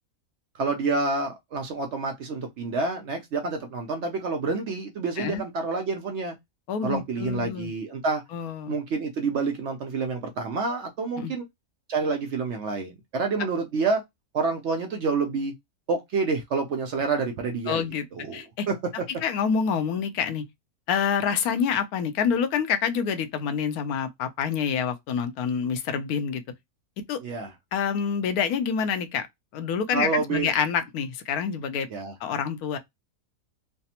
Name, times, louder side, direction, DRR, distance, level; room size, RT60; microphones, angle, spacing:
voice 1, 0.5-6.4 6.8-8.2 8.7-11.4 11.9-14.0 14.3-15.5 15.9-17.8 18.1-18.8 27.2-27.5 29.9-30.5 31.9-32.1, right 4 dB, 65° right, 0.7 m, -28 dB
voice 2, 6.7-7.7 8.3-8.7 11.2-11.3 17.7-18.0 18.3-18.7 19.2-20.4 20.9-26.4 27.1-27.2 27.7-29.3 29.5-31.9 32.2-32.8, left 7 dB, 80° left, 1.1 m, -27 dB
3.2 x 2.0 x 2.8 m
omnidirectional pair, 1.6 m